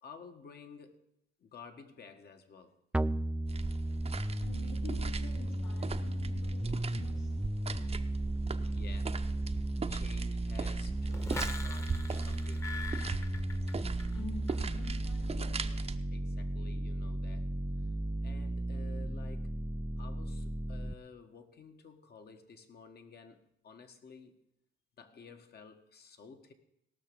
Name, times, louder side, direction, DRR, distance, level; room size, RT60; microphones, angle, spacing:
voice 1, 0.0-1.0 1.4-2.8 8.5-9.2 9.9-12.7 16.1-17.5 18.2-19.5 20.0-24.3 25.0-26.5, left 5 dB, 55° left, 1.7 m, -53 dB
sound 1, 2.9-20.9, right 1 dB, 5° right, 0.4 m, -35 dB
sound 2, 3.5-16.0, right 5 dB, 30° right, 0.8 m, -40 dB
voice 2, 4.4-7.5 14.1-15.9, left 5 dB, 70° left, 1.0 m, -48 dB
sound 3, 11.1-14.2 14.5-14.9, left 3 dB, 15° left, 1.1 m, -43 dB
18.0 x 6.2 x 6.9 m
cardioid pair, 90°, 20 cm